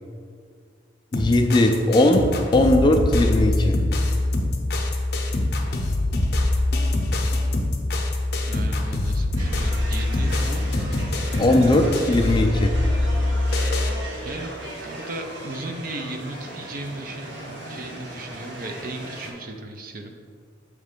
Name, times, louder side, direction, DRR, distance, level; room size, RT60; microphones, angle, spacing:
sound 1, 1.1-13.9, left 2 dB, 55° left, 0.7 m, -24 dB
voice 1, 1.1-2.2 2.5-3.8 11.4-12.7, left 1 dB, 25° left, 4 dB, 0.3 m, -18 dB
voice 2, 8.5-10.7 14.2-14.5 14.8-20.1, right 2 dB, 45° right, 5 dB, 0.5 m, -36 dB
sound 2, 9.4-19.3, right 1 dB, 70° right, 1.0 m, -37 dB
6.0 x 3.2 x 5.2 m, 2.1 s
head